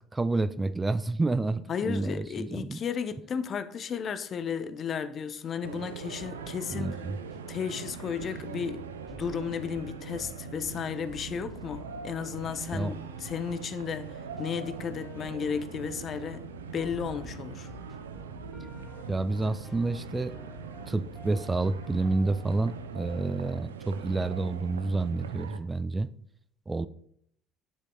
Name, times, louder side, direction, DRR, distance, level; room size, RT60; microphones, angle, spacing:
voice 1, 0.1-2.8 6.7-7.2 12.7-12.9 19.1-20.4 20.9-26.1 26.7-26.9, right 3 dB, 20° right, 0.4 m, -29 dB
voice 2, 1.7-7.0 7.5-8.8 9.1-16.5 16.7-17.7, left 7 dB, 45° left, 0.6 m, -34 dB
sound 1, 5.6-25.6, right 6 dB, 90° right, 0.4 m, -42 dB
sound 2, 6.2-23.1, left 2 dB, 15° left, 0.8 m, -50 dB
9.3 x 7.5 x 2.3 m
hypercardioid pair, 60°, 0 cm